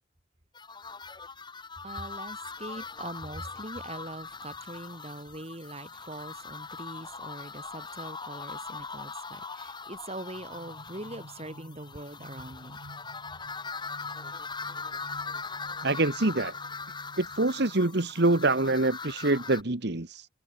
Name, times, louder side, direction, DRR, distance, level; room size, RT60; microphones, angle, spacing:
sound 1, 0.5-19.6, left 4 dB, 25° left, 4.3 m, -41 dB
voice 1, 1.8-12.8, right 1 dB, 30° right, 3.9 m, -42 dB
sound 2, 10.3-18.2, right 1 dB, 75° right, 4.6 m, -52 dB
voice 2, 15.8-16.5 17.2-20.3, right 2 dB, 55° right, 1.4 m, -25 dB
head